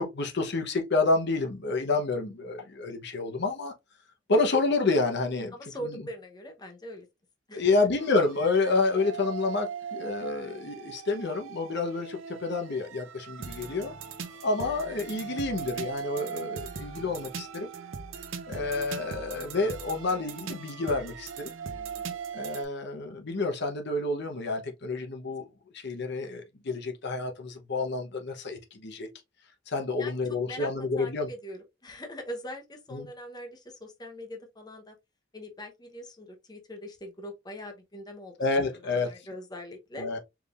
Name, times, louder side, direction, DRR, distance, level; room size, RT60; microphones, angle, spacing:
voice 1, 0.0-3.7 4.3-5.5 5.8-5.9 7.5-13.9 14.4-17.7 18.5-21.5 22.3-25.5 25.7-29.1 29.7-31.3 32.9-33.1 38.4-39.3 40.0-40.2, left 3 dB, 60° left, 0.9 m, -29 dB
voice 2, 5.5-7.1 7.5-7.6 14.3-14.4 21.9-22.0 30.0-30.7 31.0-34.9 35.3-38.5 39.0-40.1, equal, 20° left, 0.9 m, -42 dB
sound 1, 8.0-22.6, right 6 dB, 75° right, 0.7 m, -40 dB
4.9 x 3.4 x 2.4 m
head